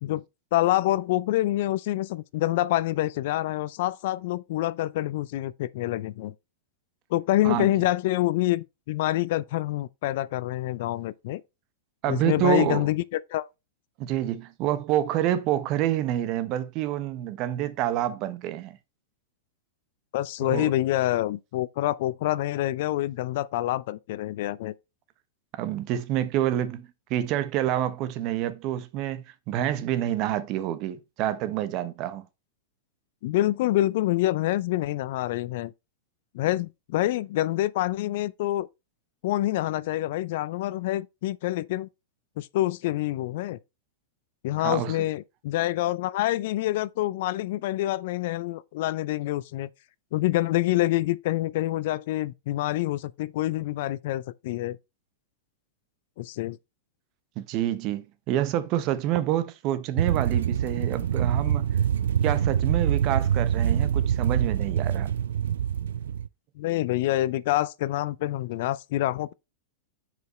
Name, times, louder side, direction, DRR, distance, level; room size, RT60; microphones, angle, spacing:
voice 1, 0.5-6.3 7.1-11.4 12.1-13.5 20.1-24.7 33.2-35.7 36.3-38.7 39.2-41.9 42.4-43.6 44.4-49.7 50.1-54.8 56.2-56.6 66.6-69.3, left 15 dB, 65° left, 0.4 m, -26 dB
voice 2, 12.0-12.9 14.0-18.8 20.4-20.7 25.6-32.2 44.6-45.0 57.4-61.7 62.2-65.1, right 11 dB, 45° right, 1.0 m, -27 dB
sound 1, 60.0-66.3, right 9 dB, 85° right, 0.3 m, -25 dB
6.6 x 5.1 x 4.3 m
hypercardioid pair, 130°, 0 cm